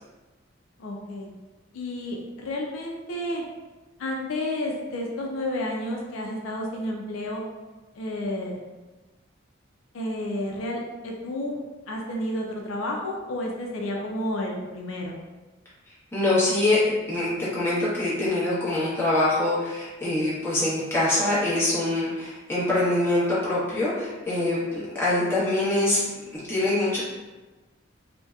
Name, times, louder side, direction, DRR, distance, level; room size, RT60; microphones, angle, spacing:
voice 1, 0.8-1.3 1.7-3.4 4.0-7.4 7.9-8.6 9.9-11.6 11.9-15.2, left 1 dB, 80° left, 0 dB, 0.4 m, -31 dB
voice 2, 16.1-26.0 26.5-27.0, left 2 dB, 10° left, -10 dB, 0.9 m, -24 dB
2.6 x 2.1 x 2.3 m, 1.2 s
head